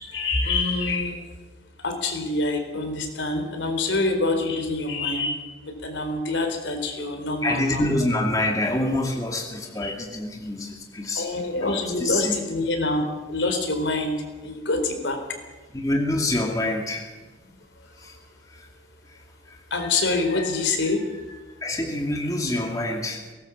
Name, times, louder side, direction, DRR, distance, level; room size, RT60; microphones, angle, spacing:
voice 1, 0.1-1.2 1.8-5.4 5.8-7.9 9.8-9.9 11.2-14.2 14.4-15.2 19.7-21.4, left 2 dB, 75° left, 5 dB, 4.2 m, -26 dB
voice 2, 7.4-11.3 11.6-12.3 15.7-17.1 18.0-18.2 18.5-18.7 19.1-19.2 19.5-19.6 21.6-23.2, left 1 dB, 20° left, 1 dB, 2.5 m, -26 dB
22.5 x 18.5 x 7.4 m, 1.2 s
head